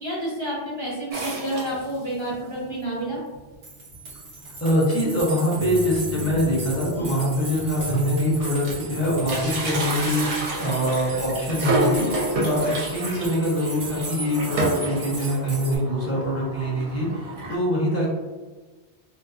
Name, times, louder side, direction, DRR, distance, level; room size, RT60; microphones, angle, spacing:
voice 1, 0.0-3.2, right 1 dB, 40° left, -7 dB, 0.4 m, -29 dB
sound 1, 1.1-2.3 2.8-2.9 3.1-3.2 4.1-4.2 4.6-4.8 5.1-5.2 6.5-6.6 7.3-7.4 7.7-8.9 9.2-17.6, right 2 dB, 80° right, 0.9 m, -29 dB
sound 2, 3.6-15.8, right 3 dB, 65° right, 1.2 m, -37 dB
voice 2, 4.6-12.1 12.4-18.1, equal, 15° left, -7 dB, 0.7 m, -24 dB
sound 3, 5.5-13.0, left 2 dB, 45° right, 1.2 m, -39 dB
2.6 x 2.2 x 2.3 m, 1.3 s
omnidirectional pair, 1.1 m